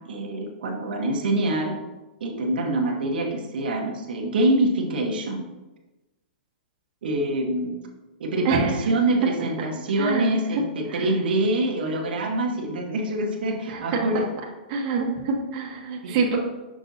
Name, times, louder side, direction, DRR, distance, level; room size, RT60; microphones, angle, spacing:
voice 1, 0.1-1.8 2.2-5.4 7.0-7.8 8.2-14.3 16.0-16.2, right 1 dB, 80° right, 1 dB, 1.1 m, -25 dB
voice 2, 10.0-10.3 10.9-11.1 13.7-14.0 14.7-16.4, right 4 dB, 35° right, -1 dB, 1.1 m, -26 dB
6.1 x 6.0 x 2.7 m, 1.1 s
hypercardioid pair, 150°, 5 cm